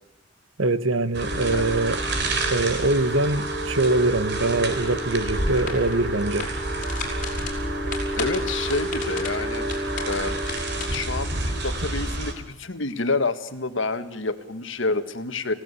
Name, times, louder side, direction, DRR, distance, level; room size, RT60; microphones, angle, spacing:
voice 1, 0.6-2.0 2.5-6.5, right 2 dB, 80° right, 1.3 m, -23 dB
sound 1, 1.1-12.3, right 2 dB, 55° right, 3.9 m, -28 dB
sound 2, 5.1-11.0, left 2 dB, 40° left, 6.1 m, -34 dB
voice 2, 8.2-9.7 10.1-10.3 10.9-15.5, left 3 dB, 70° left, 1.8 m, -28 dB
30.0 x 16.5 x 8.3 m
head